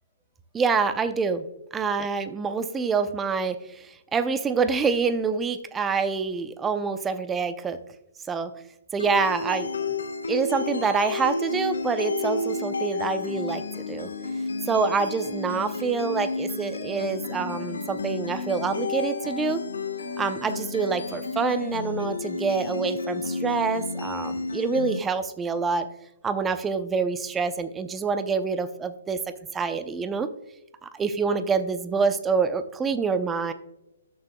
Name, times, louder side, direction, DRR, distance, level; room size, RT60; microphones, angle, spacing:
voice 1, 0.5-1.4 1.7-7.8 8.3-8.5 8.9-10.0 10.3-14.1 14.7-19.6 20.2-25.9 26.2-29.2 29.5-30.3 30.8-33.5, right 5 dB, 15° right, 11 dB, 0.6 m, -26 dB
sound 1, 9.0-25.0, left 3 dB, 80° left, 1.4 m, -31 dB
13.0 x 6.7 x 2.3 m, 0.86 s
hypercardioid pair, 135°, 0 cm